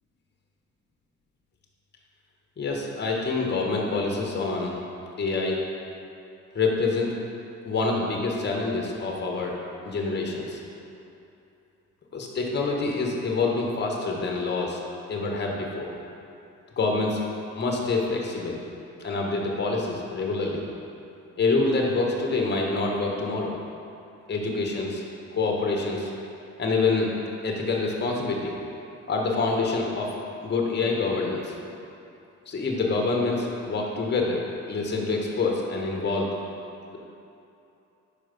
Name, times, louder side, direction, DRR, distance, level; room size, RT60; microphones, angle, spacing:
voice 1, 2.6-4.8 5.2-5.6 6.5-7.1 7.6-9.6 9.8-10.6 12.1-14.8 15.1-15.9 16.8-17.2 17.6-18.6 19.0-20.6 21.4-23.6 24.3-25.0 25.3-26.1 26.6-27.1 27.4-28.5 29.1-30.1 30.4-31.5 32.5-36.3, left 3 dB, 35° left, 0 dB, 1.0 m, -26 dB
5.0 x 4.6 x 5.1 m, 2.8 s
cardioid pair, 90°, 30 cm